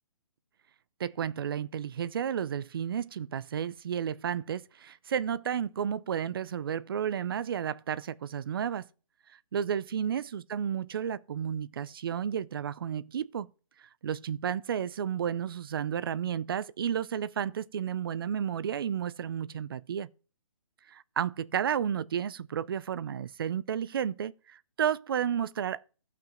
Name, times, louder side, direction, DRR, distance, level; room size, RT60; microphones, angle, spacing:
voice 1, 1.0-8.8 9.5-13.5 14.0-20.1 20.9-25.8, right 8 dB, 45° right, 0.5 m, -32 dB
15.0 x 5.9 x 3.0 m
hypercardioid pair, 165°, 17 cm